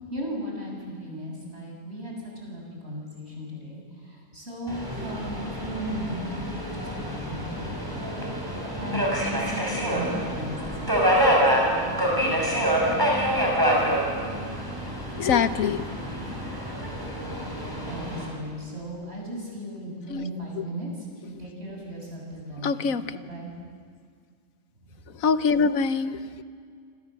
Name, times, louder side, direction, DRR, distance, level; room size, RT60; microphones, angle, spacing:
voice 1, 0.1-8.1 8.6-13.0 17.9-23.5 24.9-25.0, equal, 50° right, -1 dB, 7.7 m, -37 dB
Subway metro underground, 4.7-18.3, equal, 15° right, 5.9 m, -26 dB
voice 2, 15.2-15.8 20.1-20.2 22.6-23.0 25.2-26.4, left 5 dB, 80° left, 12 dB, 1.3 m, -23 dB
27.5 x 26.0 x 7.7 m, 2.1 s
omnidirectional pair, 1.4 m